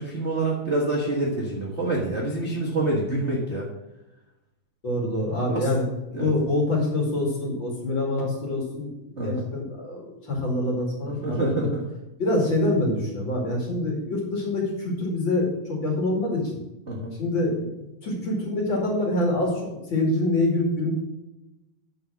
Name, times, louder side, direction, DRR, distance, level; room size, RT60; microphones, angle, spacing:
voice 1, 0.0-3.7 5.5-5.7 6.1-6.3 9.2-9.4 11.2-11.8 16.9-17.1, right 2 dB, 45° right, -3 dB, 0.8 m, -26 dB
voice 2, 4.8-5.8 6.2-11.6 12.2-16.4 17.2-20.9, left 2 dB, 40° left, -2 dB, 2.6 m, -25 dB
12.0 x 4.7 x 6.2 m, 0.96 s
omnidirectional pair, 4.0 m